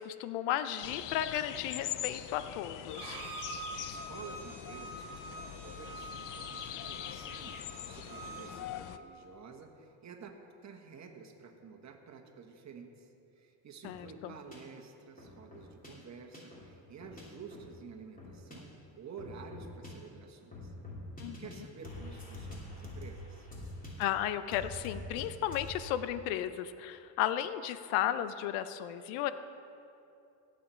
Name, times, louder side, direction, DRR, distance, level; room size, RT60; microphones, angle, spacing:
voice 1, 0.0-3.2 13.8-14.3 21.2-21.5 24.0-29.3, left 11 dB, 85° left, 12 dB, 0.8 m, -34 dB
sound 1, 0.8-9.0, left 12 dB, 45° left, 0.5 m, -43 dB
Bowed string instrument, 2.9-8.5, right 3 dB, 55° right, 1.9 m, -46 dB
voice 2, 3.8-10.3 10.6-20.7 21.4-23.5, right 5 dB, 35° right, 4 dB, 1.4 m, -51 dB
sound 2, 13.8-14.0 14.5-14.6 15.2-15.9 16.3-16.6 17.0-17.2 17.5-17.7 18.2-18.6 19.2-19.9 20.5-21.6 21.8-24.0 24.5-25.2 25.5-25.8, left 2 dB, 15° left, 3.1 m, -45 dB
17.0 x 7.9 x 4.5 m, 2.7 s
cardioid pair, 105°, 48 cm